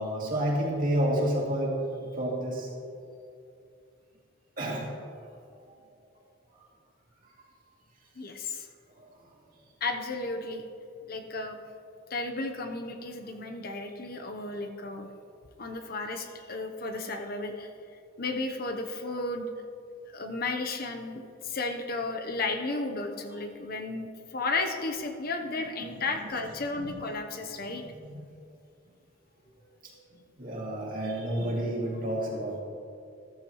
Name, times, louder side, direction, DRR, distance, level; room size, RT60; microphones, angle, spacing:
voice 1, 0.0-2.7 4.6-4.9 7.4-7.5 9.0-9.1 25.8-26.0 26.7-26.8 28.0-28.2 29.8-30.0 30.4-32.6, right 1 dB, 45° right, -3 dB, 2.5 m, -30 dB
voice 2, 8.2-8.7 9.8-10.6 11.1-11.6 12.1-15.1 15.6-17.7 18.2-19.5 20.1-27.9, left 3 dB, 50° left, 5 dB, 0.9 m, -33 dB
14.0 x 13.5 x 3.1 m, 2.5 s
head